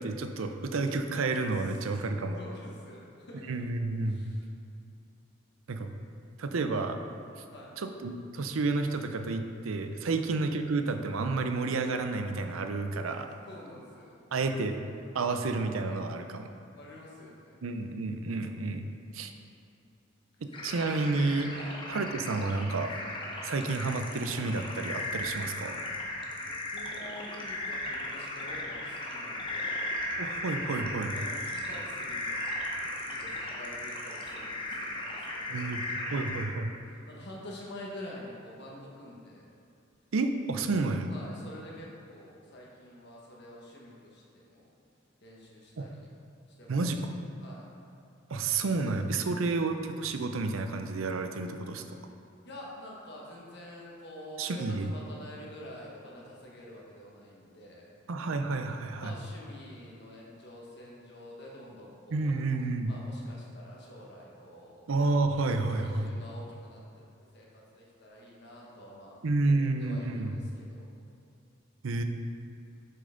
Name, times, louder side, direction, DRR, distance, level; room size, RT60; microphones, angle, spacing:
voice 1, 0.0-2.4 3.5-4.3 5.7-5.9 6.4-7.0 7.4-7.5 7.8-13.3 14.3-14.8 15.1-16.5 17.6-18.9 19.1-19.3 20.4-21.5 21.9-22.9 23.4-25.8 30.2-31.2 35.5-35.8 36.1-36.7 40.1-41.1 45.8-45.9 46.7-47.0 48.3-51.8 54.4-54.9 58.1-59.1 62.1-62.9 64.9-66.1 69.2-70.3 71.8-72.0, right 3 dB, 80° right, 7 dB, 0.5 m, -30 dB
voice 2, 2.3-3.6 4.0-4.5 7.5-7.8 10.0-10.2 13.5-14.2 16.7-17.6 21.5-21.7 26.4-30.0 31.1-35.8 36.8-39.5 41.1-44.7 45.2-46.1 46.5-47.1 47.4-47.7 52.4-58.0 59.0-62.4 62.9-64.8 65.7-67.0 67.3-69.2 69.4-70.9, left 1 dB, 55° left, -4 dB, 1.4 m, -48 dB
sound 1, 20.5-36.4, left 1 dB, 25° left, 0.9 m, -36 dB
7.8 x 6.7 x 3.8 m, 2.5 s
head